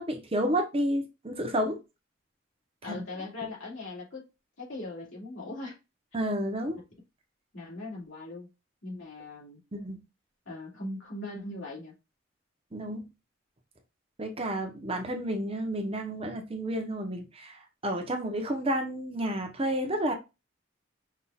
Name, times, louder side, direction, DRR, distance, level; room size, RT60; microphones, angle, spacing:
voice 1, 0.0-1.8 2.8-3.0 6.1-6.8 9.7-10.0 12.7-13.0 14.2-20.1, right 1 dB, 30° right, 0.8 m, -31 dB
voice 2, 2.8-4.3 4.6-5.8 7.5-8.5 8.8-9.6 10.5-11.9, left 2 dB, 75° left, 2.6 m, -39 dB
5.6 x 3.6 x 2.4 m
head